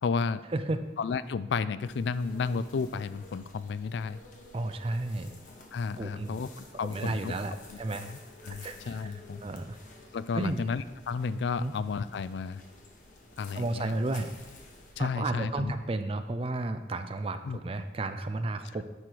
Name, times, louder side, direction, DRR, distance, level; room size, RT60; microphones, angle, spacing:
voice 1, 0.0-0.4 1.0-4.2 5.7-7.3 7.7-8.2 8.4-9.4 10.1-12.6 13.4-13.9 15.0-15.7 17.4-17.6, left 5 dB, 70° left, 15 dB, 0.3 m, -32 dB
sound 1, 1.8-14.9, left 2 dB, 45° left, 1.2 m, -52 dB
voice 2, 4.5-5.3 6.0-6.4 6.8-8.1 8.5-9.1 9.4-9.9 10.3-10.7 11.6-11.7 13.5-14.3 15.0-18.8, right 2 dB, 30° right, 9 dB, 0.4 m, -33 dB
9.8 x 4.9 x 4.6 m, 1.2 s
head